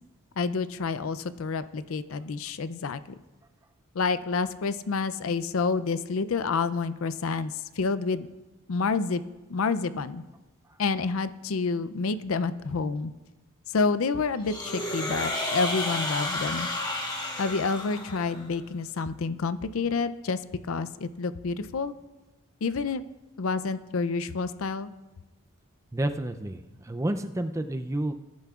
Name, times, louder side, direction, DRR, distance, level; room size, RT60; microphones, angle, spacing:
voice 1, 0.4-3.0 3.9-8.3 8.7-9.2 9.5-10.2 10.8-13.1 13.7-16.7 17.4-20.4 20.7-21.9 22.6-23.0 23.4-24.9, left 4 dB, 70° left, 14 dB, 0.5 m, -28 dB
sound 1, 14.5-18.5, left 2 dB, 20° left, 1.4 m, -32 dB
voice 2, 25.9-28.1, right 1 dB, 15° right, 8 dB, 0.4 m, -30 dB
20.0 x 10.5 x 2.4 m, 1.1 s
head